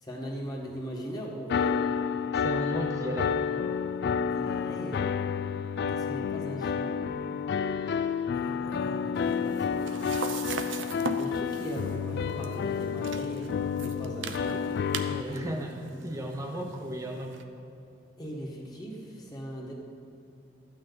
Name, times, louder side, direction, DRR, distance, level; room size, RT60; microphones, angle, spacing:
voice 1, 0.0-1.8 4.3-5.1 5.9-7.0 8.3-10.2 11.2-14.7 15.3-15.5 15.9-16.0 18.2-19.7, right 1 dB, 20° left, -3 dB, 1.5 m, -39 dB
sound 1, 1.5-15.2, left 6 dB, 55° left, 0.3 m, -30 dB
voice 2, 2.3-3.4 15.0-17.4, right 1 dB, 15° right, 2 dB, 0.7 m, -35 dB
sound 2, 9.1-17.4, right 4 dB, 80° right, 0.7 m, -40 dB
13.0 x 8.9 x 4.0 m, 2.7 s
head